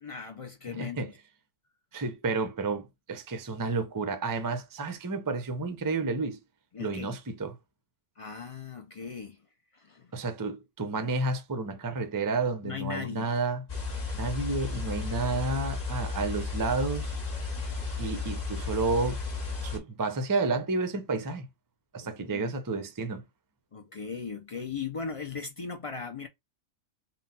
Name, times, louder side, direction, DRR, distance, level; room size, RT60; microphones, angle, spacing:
voice 1, 0.0-1.1 6.7-7.1 8.2-9.4 9.7-10.1 12.6-13.3 22.0-22.5 23.7-26.3, left 6 dB, 60° left, 0.3 m, -38 dB
voice 2, 0.7-1.1 1.9-6.4 6.8-7.5 10.1-13.6 14.1-17.1 18.0-19.2 19.6-21.5 21.9-23.2, right 3 dB, 25° right, 0.4 m, -31 dB
sound 1, 13.7-19.8, left 4 dB, 45° left, 1.4 m, -34 dB
3.9 x 2.3 x 4.0 m
omnidirectional pair, 1.3 m